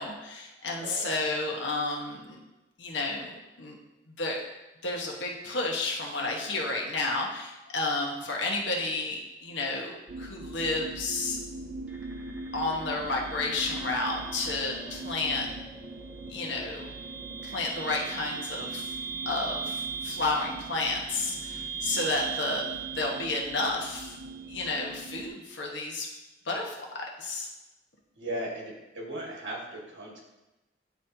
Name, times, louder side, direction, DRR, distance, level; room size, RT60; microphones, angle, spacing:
voice 1, 0.0-2.4 2.8-3.8 4.1-4.4 4.8-11.4 12.5-15.5 16.3-16.9 17.4-18.9 19.2-24.2 24.5-26.1 26.4-27.5, left 2 dB, 75° left, 0 dB, 1.2 m, -31 dB
voice 2, 0.8-1.4 28.2-30.2, right 1 dB, 85° right, -2 dB, 1.8 m, -37 dB
sound 1, 10.1-25.3, right 2 dB, 50° right, 0.5 m, -42 dB
sound 2, 11.9-24.9, right 7 dB, 5° right, 0.6 m, -40 dB
10.5 x 4.1 x 2.8 m, 1.0 s
head